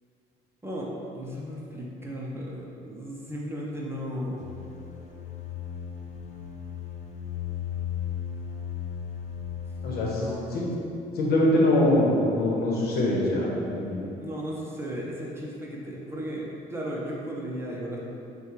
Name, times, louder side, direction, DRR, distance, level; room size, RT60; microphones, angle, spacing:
voice 1, 0.6-4.5 10.1-10.7 14.2-18.0, equal, 15° right, -4 dB, 0.6 m, -35 dB
sound 1, 4.4-10.4, left 8 dB, 45° left, 0.5 m, -36 dB
voice 2, 9.8-10.2 10.5-10.7 11.1-14.0, left 1 dB, 70° left, -4 dB, 1.0 m, -23 dB
6.3 x 2.3 x 3.1 m, 2.8 s
cardioid pair, 110°, 17 cm